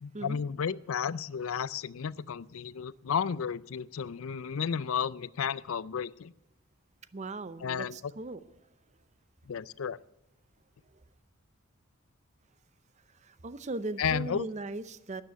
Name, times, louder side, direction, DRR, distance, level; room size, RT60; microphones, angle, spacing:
voice 1, 0.0-6.3 7.6-7.9 9.5-10.0 14.0-14.5, left 7 dB, 75° left, 20 dB, 0.4 m, -33 dB
voice 2, 7.1-8.4 13.1-15.2, right 2 dB, 35° right, 15 dB, 0.6 m, -38 dB
12.5 x 9.8 x 9.2 m, 0.90 s
head